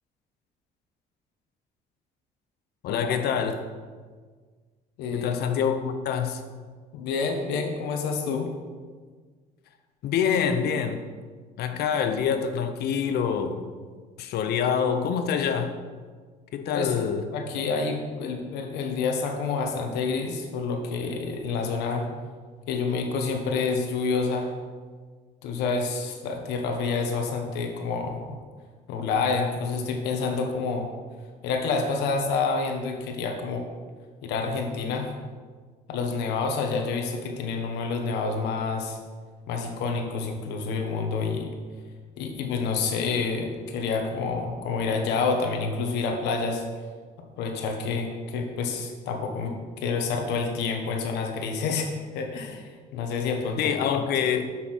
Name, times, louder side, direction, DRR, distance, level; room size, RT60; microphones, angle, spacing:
voice 1, 2.8-3.7 5.1-6.4 10.0-11.0 11.6-13.6 14.2-15.8 16.5-17.3 53.6-54.4, left 7 dB, 70° left, 8 dB, 0.8 m, -26 dB
voice 2, 5.0-5.3 6.9-8.5 16.7-16.9 17.3-22.1 22.7-24.5 25.4-28.2 28.9-30.9 31.4-33.7 34.2-35.1 35.9-39.0 39.5-41.5 42.2-46.6 47.4-53.6, left 4 dB, 90° left, 3 dB, 1.3 m, -28 dB
6.1 x 5.7 x 6.2 m, 1.5 s
cardioid pair, 110°, 17 cm